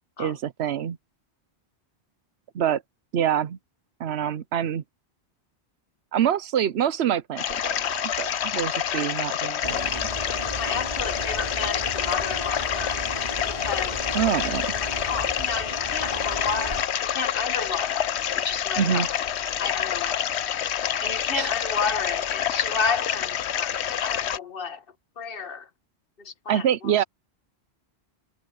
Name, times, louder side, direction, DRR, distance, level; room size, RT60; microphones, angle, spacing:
voice 1, 0.2-1.0 2.5-2.8 3.1-3.6 4.0-4.8 6.1-10.1 14.1-14.7 18.8-19.1 21.3-21.5 26.5-27.0, right 9 dB, 70° right, 1.0 m, -26 dB
sound 1, 7.4-24.4, left 9 dB, 80° left, 1.0 m, -28 dB
sound 2, 9.6-16.8, right 1 dB, 35° right, 4.5 m, -35 dB
voice 2, 10.6-13.1 13.5-14.0 14.8-19.2 19.6-20.4 21.0-24.8 25.2-25.7 26.2-27.0, left 5 dB, 55° left, 1.8 m, -32 dB
omnidirectional pair, 1.1 m